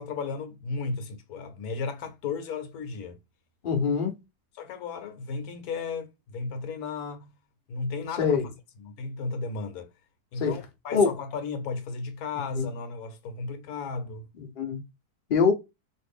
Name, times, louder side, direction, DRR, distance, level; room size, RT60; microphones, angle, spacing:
voice 1, 0.0-3.2 4.5-7.3 7.7-8.5 8.8-9.9 10.3-14.3, left 4 dB, 70° left, 1.1 m, -34 dB
voice 2, 3.6-4.1 8.2-8.4 10.4-10.5 10.9-11.1 12.6-12.7 14.4-14.8 15.3-15.5, left 5 dB, 55° left, 0.6 m, -23 dB
2.6 x 2.5 x 3.4 m
omnidirectional pair, 1.7 m